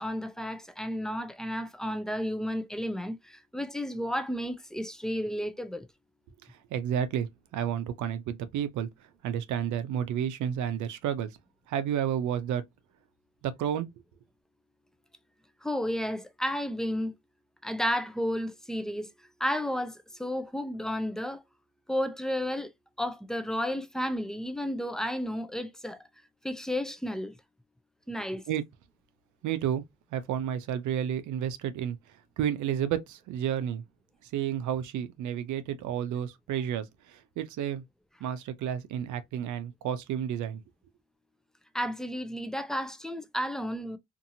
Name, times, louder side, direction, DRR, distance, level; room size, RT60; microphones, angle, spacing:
voice 1, 0.0-5.9 15.6-17.1 17.6-19.1 19.4-21.4 21.9-22.7 23.0-26.0 26.4-27.3 28.1-28.4 41.7-44.0, equal, ahead, 0.4 m, -32 dB
voice 2, 6.5-8.9 9.2-11.3 11.7-12.6 13.4-13.9 28.5-28.6 29.4-29.8 30.1-32.0 32.4-33.8 34.2-37.8 38.2-40.6, right 9 dB, 75° right, 0.5 m, -31 dB
2.7 x 2.6 x 2.6 m
cardioid pair, 90°, 30 cm